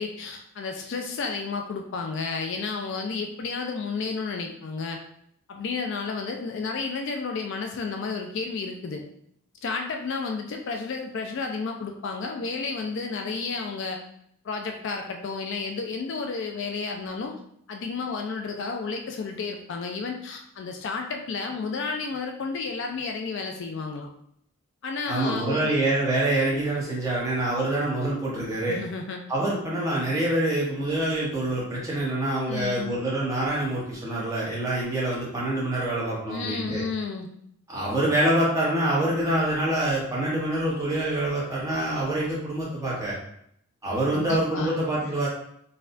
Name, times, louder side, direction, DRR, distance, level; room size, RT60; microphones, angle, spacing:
voice 1, 0.0-5.0 5.5-9.0 9.6-14.0 14.4-17.4 17.7-24.1 24.8-25.8 28.7-29.2 32.5-32.9 36.3-37.3 44.1-44.7, left 4 dB, 55° left, 3 dB, 0.3 m, -32 dB
voice 2, 25.1-28.8 29.3-36.8 37.7-43.1 43.8-45.3, right 1 dB, 15° right, -6 dB, 1.0 m, -26 dB
4.1 x 2.3 x 2.5 m, 0.71 s
head